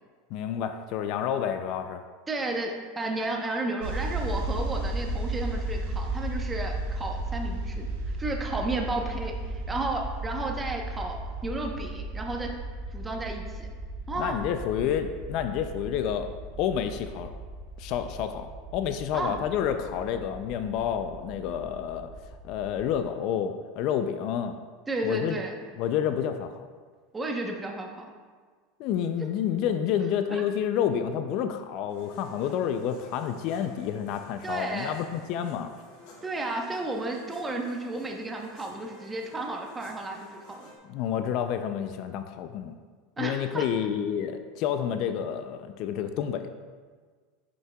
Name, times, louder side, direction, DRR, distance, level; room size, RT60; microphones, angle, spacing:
voice 1, 0.3-2.0 14.2-16.3 16.6-17.3 17.8-22.1 22.4-24.5 25.0-25.4 25.8-26.6 28.8-35.7 40.9-42.7 43.2-46.6, left 9 dB, 55° left, 8 dB, 0.4 m, -29 dB
voice 2, 2.3-7.9 8.2-12.5 12.9-13.7 14.1-14.4 19.1-19.4 24.9-25.5 27.1-28.0 30.3-30.4 34.4-35.0 36.2-40.7 43.2-43.6, right 2 dB, 15° right, 1 dB, 0.9 m, -33 dB
sound 1, 3.8-23.0, right 1 dB, 80° right, 0.8 m, -35 dB
sound 2, 31.9-40.8, left 2 dB, 75° left, 1.8 m, -53 dB
9.3 x 5.6 x 2.3 m, 1.5 s
supercardioid pair, 130°, 0 cm